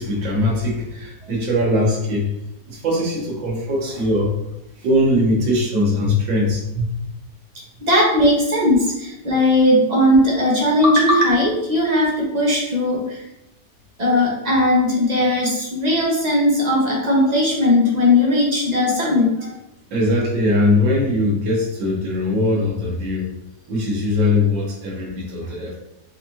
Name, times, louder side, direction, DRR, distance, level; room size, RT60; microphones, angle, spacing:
voice 1, 0.0-2.3 2.7-4.3 4.8-6.9 19.9-23.3 23.7-25.8, left 1 dB, 80° right, -2 dB, 1.8 m, -20 dB
voice 2, 7.8-13.2 14.0-19.5, left 1 dB, 35° right, -4 dB, 0.7 m, -18 dB
4.9 x 2.6 x 2.8 m, 0.87 s
omnidirectional pair, 2.0 m